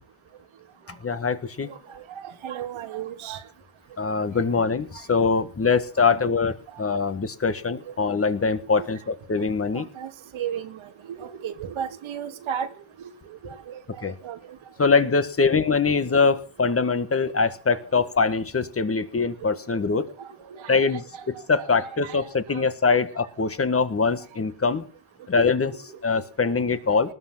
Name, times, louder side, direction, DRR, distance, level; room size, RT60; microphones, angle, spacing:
voice 1, 1.0-1.7 4.0-6.5 6.8-9.8 14.0-14.1 14.8-20.1 20.7-21.0 21.5-24.8 25.3-25.7 26.0-27.1, left 4 dB, 30° left, 11 dB, 1.6 m, -23 dB
voice 2, 1.6-3.4 4.9-5.3 5.6-6.2 6.7-6.8 7.8-7.9 8.6-8.9 9.7-12.7 13.0-14.6 15.9-16.0 19.1-19.6 20.2-22.6 25.7-26.5 26.9-27.1, right 9 dB, 85° right, 7 dB, 2.3 m, -37 dB
20.0 x 12.0 x 5.8 m, 0.41 s
cardioid pair, 115°, 47 cm